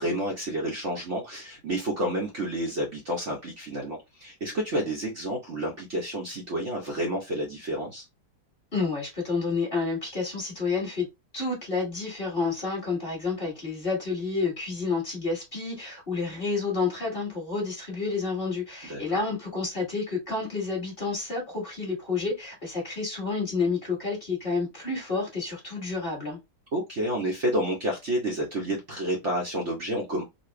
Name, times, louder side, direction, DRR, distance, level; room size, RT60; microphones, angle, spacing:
voice 1, 0.0-8.1 18.9-19.0 26.7-30.2, right 1 dB, 50° right, 1.1 m, -30 dB
voice 2, 8.7-11.1 11.3-26.4, left 4 dB, 30° left, 1.8 m, -29 dB
4.2 x 2.4 x 3.1 m
omnidirectional pair, 1.9 m